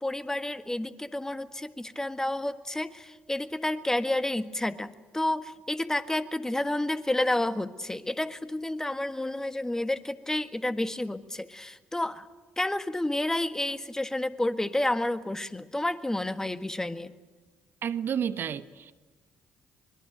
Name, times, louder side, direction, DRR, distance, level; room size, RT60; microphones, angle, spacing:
voice 1, 0.0-12.3 12.6-17.1, left 1 dB, 10° left, 11 dB, 1.6 m, -30 dB
voice 2, 17.8-18.9, right 8 dB, 55° right, 13 dB, 1.2 m, -31 dB
25.0 x 21.5 x 9.3 m, 1.2 s
hypercardioid pair, 50°, 4 cm